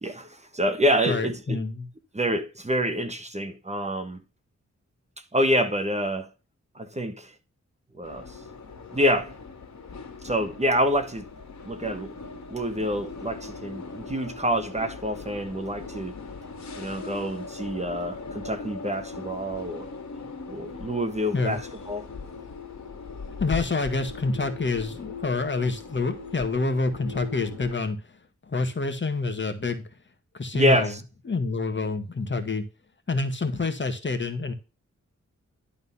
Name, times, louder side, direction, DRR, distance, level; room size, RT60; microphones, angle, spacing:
voice 1, 0.0-1.6 2.1-4.2 5.3-6.3 6.7-7.3 8.0-8.2 8.9-9.3 10.2-11.2 11.6-12.1 12.5-16.2 16.8-19.9 20.5-22.1 30.5-31.0, equal, 25° right, 1.4 m, -27 dB
voice 2, 1.0-1.9 21.3-21.6 23.4-28.0 28.5-29.8 30.3-30.9 31.2-32.6 33.1-34.5, left 3 dB, 40° left, 1.7 m, -27 dB
sound 1, 8.0-27.7, left 4 dB, 70° left, 2.3 m, -40 dB
11.5 x 4.0 x 5.5 m
wide cardioid pair, 90°, 29 cm